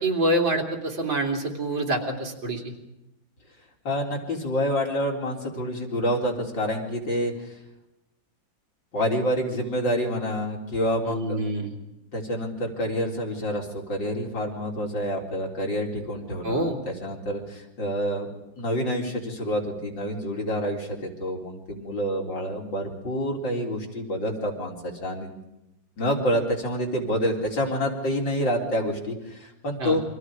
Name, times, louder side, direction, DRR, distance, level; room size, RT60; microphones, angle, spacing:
voice 1, 0.0-2.7 11.1-11.7 16.4-16.8 29.8-30.0, right 1 dB, 75° right, 1 dB, 3.8 m, -26 dB
voice 2, 3.8-7.5 8.9-11.4 12.1-18.3 18.6-25.3 26.0-30.0, equal, 70° left, 0 dB, 4.6 m, -28 dB
29.0 x 24.5 x 5.0 m, 0.91 s
omnidirectional pair, 2.1 m